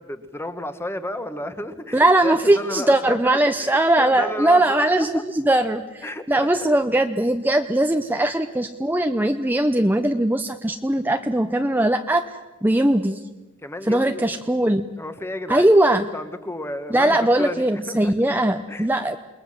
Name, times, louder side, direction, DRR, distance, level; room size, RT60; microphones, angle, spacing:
voice 1, 0.0-5.2 6.0-6.7 13.6-14.3 15.0-18.1 18.7-18.9, left 1 dB, 10° left, 10 dB, 1.5 m, -33 dB
voice 2, 1.9-12.2 12.6-13.2 13.9-14.8 15.5-16.0 16.9-19.2, right 1 dB, 10° right, 6 dB, 0.8 m, -20 dB
29.0 x 21.0 x 7.6 m, 1.2 s
head